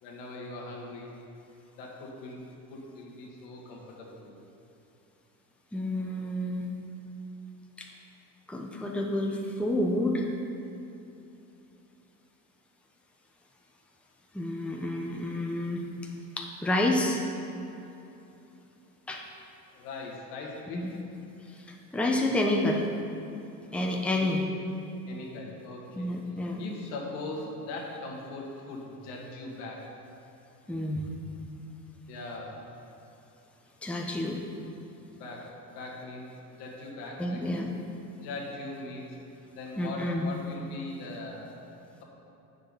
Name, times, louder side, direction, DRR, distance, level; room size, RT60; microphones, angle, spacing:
voice 1, 0.0-1.1 1.8-2.4 2.7-4.5 19.7-20.8 24.1-24.4 25.1-26.1 26.6-29.8 32.1-32.6 35.1-37.4 38.2-39.2 39.5-41.6, left 2 dB, 75° left, -2 dB, 1.8 m, -40 dB
voice 2, 5.7-6.7 7.8-7.9 8.5-10.3 14.3-15.9 16.4-17.2 19.1-19.2 20.7-20.9 21.9-22.9 23.7-24.4 26.0-26.6 30.7-31.1 33.8-34.4 37.2-37.7 39.8-40.3, left 1 dB, ahead, 0 dB, 0.9 m, -29 dB
8.3 x 6.8 x 4.1 m, 2.9 s
hypercardioid pair, 80°, 48 cm